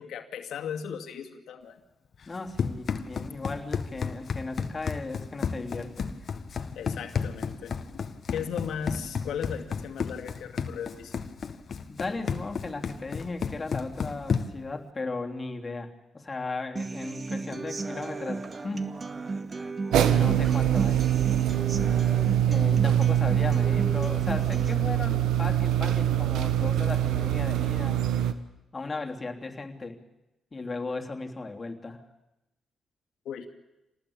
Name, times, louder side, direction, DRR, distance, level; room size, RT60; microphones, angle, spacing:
voice 1, 0.0-1.8 6.7-8.0 8.3-11.1 33.2-33.5, left 7 dB, 75° left, 5 dB, 2.5 m, -36 dB
Run, 2.2-14.7, left 6 dB, 55° left, 1.7 m, -33 dB
voice 2, 2.3-6.1 11.9-18.9 20.0-21.1 22.4-28.0 28.7-30.0 30.5-32.0, left 3 dB, 30° left, 3 dB, 3.3 m, -36 dB
Human voice / Acoustic guitar, 16.8-24.7, right 3 dB, 40° right, 2.1 m, -35 dB
sound 1, 19.9-28.3, right 11 dB, 85° right, 1.3 m, -24 dB
27.0 x 19.0 x 8.8 m, 0.96 s
cardioid pair, 70°, 0 cm